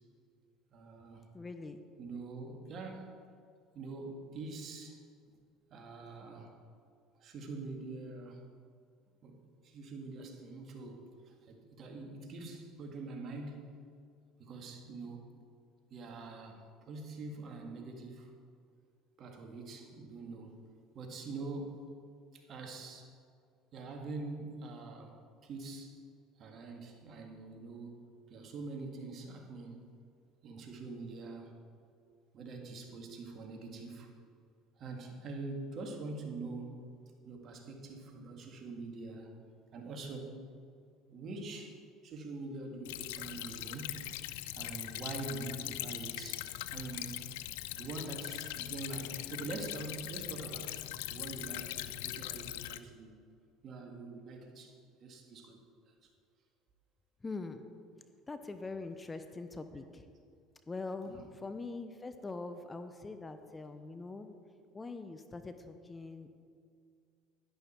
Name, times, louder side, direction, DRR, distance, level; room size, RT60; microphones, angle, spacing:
voice 1, 0.7-1.2 2.0-3.2 3.7-5.0 5.7-6.5 7.2-8.4 9.2-9.4 9.6-13.8 14.4-15.2 15.9-18.3 19.2-20.6 20.9-21.9 22.3-23.1 23.7-25.2 25.4-26.0 26.4-28.0 28.3-29.8 30.4-31.5 32.3-34.1 34.8-36.8 37.2-39.3 39.7-40.3 41.1-44.1 44.6-47.2 47.7-50.8 51.1-53.1 53.6-55.6 55.9-56.1 61.0-61.3, right 3 dB, 50° right, 2 dB, 2.1 m, -44 dB
voice 2, 1.3-1.8 57.2-57.6 58.3-60.0 60.7-64.3 64.7-66.3, left 3 dB, 20° left, 9 dB, 0.8 m, -43 dB
Stream / Trickle dribble, 42.9-52.8, left 15 dB, 80° left, 0.4 m, -41 dB
11.0 x 11.0 x 4.5 m, 2.2 s
supercardioid pair, 85°, 0 cm